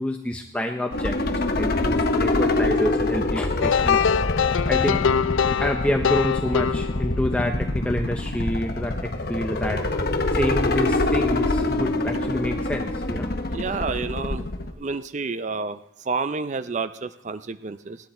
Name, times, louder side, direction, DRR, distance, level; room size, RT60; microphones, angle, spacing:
voice 1, 0.0-4.0 4.7-5.1 5.6-10.0 10.3-13.3, left 1 dB, 5° left, 3 dB, 0.6 m, -28 dB
sound 1, 0.9-14.7, left 2 dB, 50° left, 1.0 m, -25 dB
sound 2, 3.6-7.4, left 7 dB, 75° left, 0.4 m, -23 dB
voice 2, 13.5-14.5 14.8-15.8 16.0-18.0, right 4 dB, 35° right, 12 dB, 0.4 m, -29 dB
19.0 x 10.5 x 4.4 m, 0.83 s
head